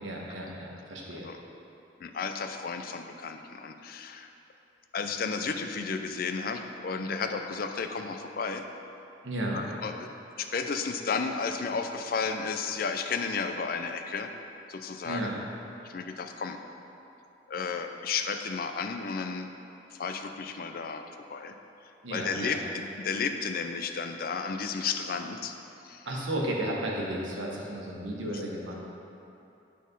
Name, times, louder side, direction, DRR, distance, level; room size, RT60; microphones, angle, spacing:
voice 1, 0.0-1.3 9.2-9.6 15.0-15.3 22.0-22.6 26.1-28.7, right 1 dB, 90° right, -2 dB, 1.2 m, -33 dB
voice 2, 2.0-4.3 4.9-8.6 9.5-10.1 10.4-14.3 14.7-15.3 15.8-16.6 17.5-19.5 19.9-21.0 21.3-21.5 22.1-25.5 25.8-26.0, left 5 dB, 50° left, 6 dB, 0.4 m, -33 dB
8.2 x 4.3 x 5.3 m, 2.8 s
head